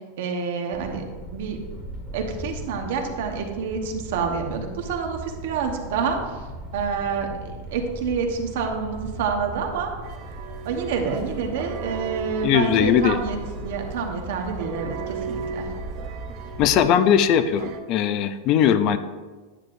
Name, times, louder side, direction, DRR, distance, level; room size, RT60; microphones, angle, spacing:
voice 1, 0.2-1.0 1.3-1.6 2.1-6.2 6.7-9.9 10.6-13.4 13.6-15.7, right 5 dB, 70° right, 3 dB, 1.1 m, -28 dB
sound 1, 0.7-16.8, right 2 dB, 10° left, 1.5 m, -38 dB
sound 2, 10.0-17.8, right 5 dB, 40° right, 0.6 m, -36 dB
voice 2, 12.4-13.2 16.6-19.0, left 9 dB, 40° left, 11 dB, 0.4 m, -19 dB
9.5 x 7.5 x 2.6 m, 1.4 s
supercardioid pair, 160°, 0 cm